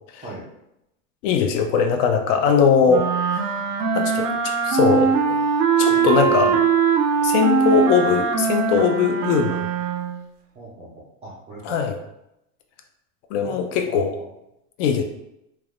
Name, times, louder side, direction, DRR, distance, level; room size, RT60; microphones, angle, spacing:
voice 1, 1.2-3.1 3.9-5.4 5.8-6.5 7.2-9.6 11.6-11.9 13.3-14.1 14.8-15.0, left 6 dB, 50° left, 5 dB, 0.5 m, -20 dB
sound 1, 2.9-10.2, right 6 dB, 75° right, 0.6 m, -21 dB
voice 2, 5.8-6.6 10.5-11.8 13.4-14.3, right 2 dB, 15° right, -7 dB, 0.3 m, -38 dB
3.3 x 2.1 x 2.3 m, 0.84 s
hypercardioid pair, 115°, 48 cm